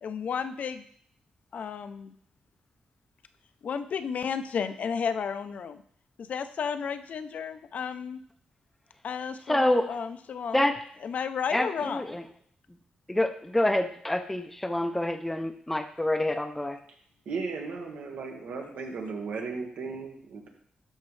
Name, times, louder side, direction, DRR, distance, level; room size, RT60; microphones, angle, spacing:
voice 1, 0.0-0.8 1.5-2.1 3.6-5.8 6.2-8.2 9.0-10.7 11.0-12.0, left 6 dB, 60° left, 10 dB, 0.5 m, -33 dB
voice 2, 9.5-9.9 10.5-10.8 11.5-12.2 13.1-16.8, left 1 dB, 5° left, 6 dB, 0.5 m, -27 dB
voice 3, 17.2-20.5, right 4 dB, 85° right, 2 dB, 1.5 m, -36 dB
12.5 x 5.3 x 3.2 m, 0.62 s
wide cardioid pair, 140°, 3 cm